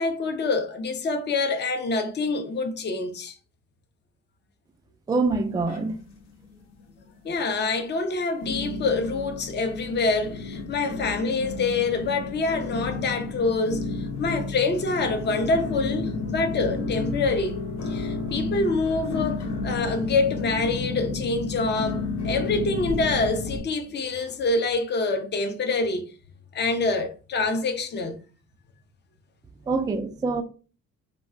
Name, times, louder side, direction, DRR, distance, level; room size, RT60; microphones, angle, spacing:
voice 1, 0.0-3.3 7.2-17.6 17.8-26.0 26.5-28.2, left 3 dB, 35° left, 0.6 m, -26 dB
voice 2, 5.1-6.0 29.7-30.4, right 3 dB, 15° right, 0.3 m, -25 dB
sound 1, 5.2-6.2 6.5-7.1 7.6-7.7 8.4-23.6, left 3 dB, 65° left, 0.9 m, -32 dB
2.3 x 2.2 x 3.8 m
cardioid pair, 90°, 30 cm